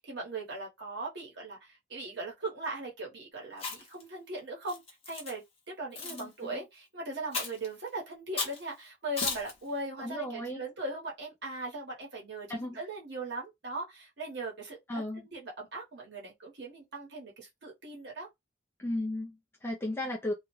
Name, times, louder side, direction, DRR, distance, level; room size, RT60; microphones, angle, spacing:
voice 1, 0.0-4.8 5.1-12.5 12.7-14.8 15.2-18.3, right 2 dB, 55° right, 1.0 m, -39 dB
Chewing mastication, 3.5-4.0 4.7-5.3 5.9-6.2 7.3-7.7 8.4-8.6 9.2-9.5, left 4 dB, 30° left, 0.8 m, -35 dB
voice 2, 6.0-6.6 10.0-10.6 12.5-12.8 14.9-15.2 18.8-20.3, left 1 dB, 10° left, 0.3 m, -35 dB
2.3 x 2.1 x 3.0 m
head